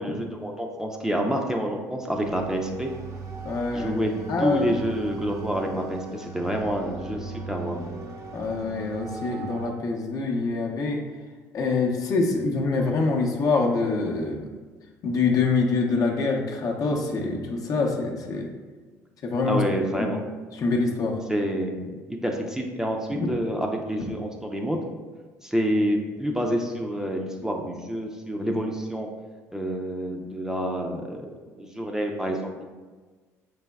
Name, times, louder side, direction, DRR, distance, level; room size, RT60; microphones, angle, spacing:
voice 1, 0.0-2.9 3.7-4.1 4.4-7.8 19.5-20.2 21.3-24.8 25.4-29.1 29.5-31.2 31.5-32.6, equal, 5° right, 1 dB, 0.5 m, -28 dB
sound 1, 2.2-9.7, right 4 dB, 50° right, 0.7 m, -38 dB
voice 2, 3.4-4.0 4.3-4.6 8.3-11.0 11.5-14.4 15.0-18.5 19.2-19.6 20.0-20.1 20.5-21.2 23.1-23.3, left 3 dB, 50° left, 0 dB, 0.7 m, -25 dB
5.0 x 3.4 x 2.3 m, 1.4 s
hypercardioid pair, 65°, 8 cm